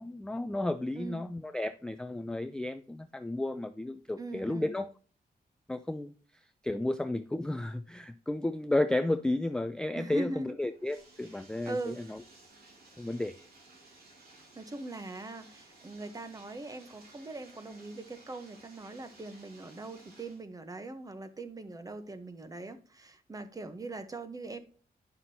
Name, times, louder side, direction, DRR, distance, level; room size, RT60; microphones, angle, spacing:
voice 1, 0.0-4.9 5.7-6.1 6.6-12.2 13.0-13.4, left 1 dB, 5° left, 10 dB, 0.3 m, -33 dB
voice 2, 4.2-4.7 9.9-10.6 11.7-12.0 14.5-24.6, right 2 dB, 20° right, 10 dB, 0.8 m, -41 dB
Bathtub (filling or washing), 10.7-20.4, right 2 dB, 75° right, 2.3 m, -57 dB
9.4 x 5.7 x 2.7 m, 0.40 s
wide cardioid pair, 125°, 16 cm